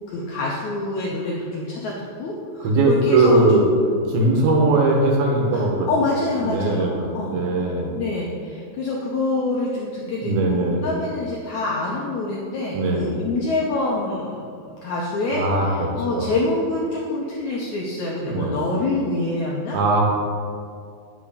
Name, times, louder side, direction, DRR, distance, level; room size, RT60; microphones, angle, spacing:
voice 1, 0.1-3.7 5.5-7.4 7.9-14.5 14.8-19.8, left 2 dB, 80° left, -3 dB, 1.7 m, -26 dB
voice 2, 2.6-3.6 4.1-5.9 6.4-8.0 10.0-10.9 12.7-13.2 15.3-16.3 18.2-18.5 19.7-20.0, right 2 dB, 80° right, -1 dB, 3.1 m, -20 dB
8.7 x 6.4 x 5.0 m, 2.3 s
omnidirectional pair, 4.4 m